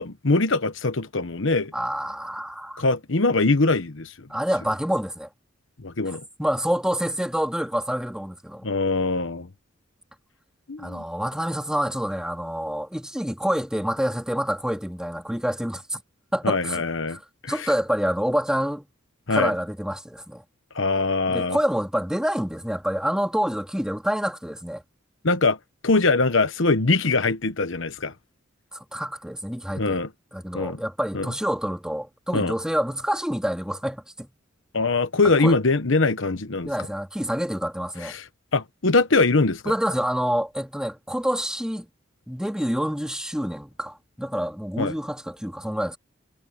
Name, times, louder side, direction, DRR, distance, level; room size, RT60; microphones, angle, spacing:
voice 1, 0.0-1.7 2.8-4.3 5.8-6.2 8.6-9.5 10.7-11.0 16.4-17.2 17.4-17.7 19.3-19.5 20.7-21.6 25.2-25.6 25.8-28.1 29.7-30.1 30.5-30.8 31.1-31.3 32.3-32.5 34.7-36.7 38.0-38.3 38.5-39.7 44.8-44.9, left 3 dB, 65° left, 1.1 m, -22 dB
voice 2, 1.7-2.8 4.3-5.3 6.1-8.7 10.8-16.0 16.3-16.8 17.1-17.2 17.5-18.9 19.3-20.4 21.3-24.8 28.7-30.0 30.3-34.3 35.4-35.5 36.6-38.1 39.6-41.9 42.3-46.0, equal, 5° right, 3.3 m, -27 dB
head